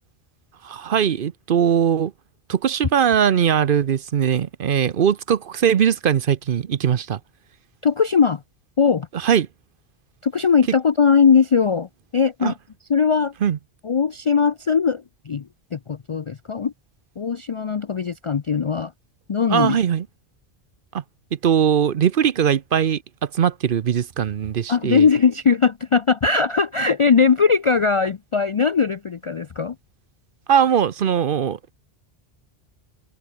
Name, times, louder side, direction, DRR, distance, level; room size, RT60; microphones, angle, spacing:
voice 1, 0.6-2.1 2.5-7.2 9.2-9.5 12.4-12.5 13.4-13.6 19.5-20.0 21.4-25.1 30.5-31.6, right 8 dB, 55° right, 0.8 m, -20 dB
voice 2, 7.8-8.4 8.8-9.1 10.2-12.5 12.9-13.3 13.8-16.7 17.2-18.9 19.3-19.8 24.7-29.8, left 5 dB, 45° left, 0.4 m, -20 dB
omnidirectional pair, 1.1 m